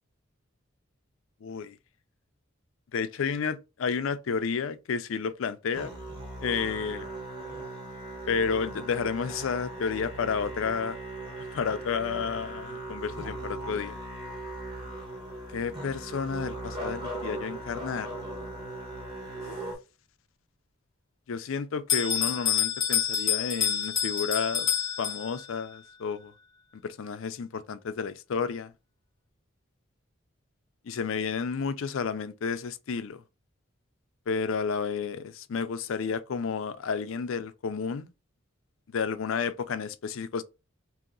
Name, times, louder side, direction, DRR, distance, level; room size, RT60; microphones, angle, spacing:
voice 1, 1.4-1.8 2.9-6.0 6.4-7.1 8.3-11.0 11.4-14.0 15.5-18.1 21.3-24.7 25.0-26.3 26.8-28.7 30.8-33.2 34.3-38.1 38.9-40.4, left 6 dB, 70° left, 0.4 m, -31 dB
Musical instrument, 5.7-19.8, right 1 dB, 20° right, 1.2 m, -39 dB
Bell, 21.9-25.6, left 8 dB, 20° left, 0.8 m, -28 dB
2.9 x 2.8 x 3.7 m
head